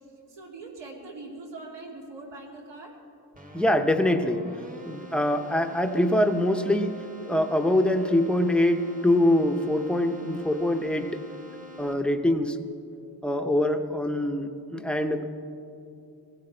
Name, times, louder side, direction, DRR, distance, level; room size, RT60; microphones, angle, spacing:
voice 1, 0.3-3.0, right 2 dB, 85° right, -1 dB, 2.8 m, -42 dB
Keyboard (musical), 3.3-12.3, left 1 dB, 20° right, 1.0 m, -45 dB
voice 2, 3.5-4.5 4.9-11.2 11.8-12.6 13.2-15.2, left 1 dB, ahead, 6 dB, 0.6 m, -24 dB
18.5 x 16.0 x 4.4 m, 2.7 s
wide cardioid pair, 150°, 41 cm